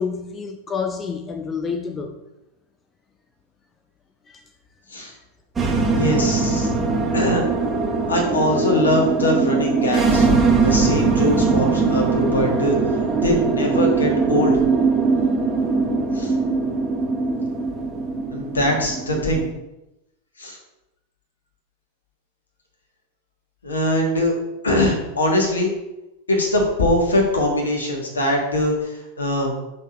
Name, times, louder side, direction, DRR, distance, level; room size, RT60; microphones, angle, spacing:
voice 1, 0.0-2.2 4.3-4.4, left 5 dB, 20° left, 0.5 m, -28 dB
sound 1, 5.6-19.5, right 4 dB, 15° right, 0.9 m, -21 dB
voice 2, 5.9-6.7 7.1-7.7 8.1-10.3 10.6-12.8 13.2-14.5 16.1-16.3 18.3-19.4 20.4-20.6 23.6-24.4 24.6-25.7 26.3-29.5, left 1 dB, 75° left, 1.5 m, -22 dB
6.1 x 5.5 x 2.9 m
figure-of-eight pair, 90°, 0 cm